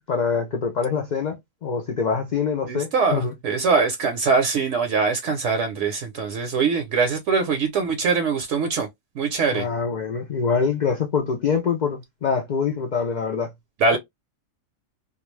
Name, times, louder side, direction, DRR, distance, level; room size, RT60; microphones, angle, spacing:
voice 1, 0.1-3.3 9.5-13.5, left 5 dB, 75° left, 0.4 m, -25 dB
voice 2, 2.6-8.9 9.1-9.7 13.8-14.0, right 5 dB, 70° right, 0.9 m, -22 dB
2.3 x 2.3 x 3.1 m
omnidirectional pair, 1.4 m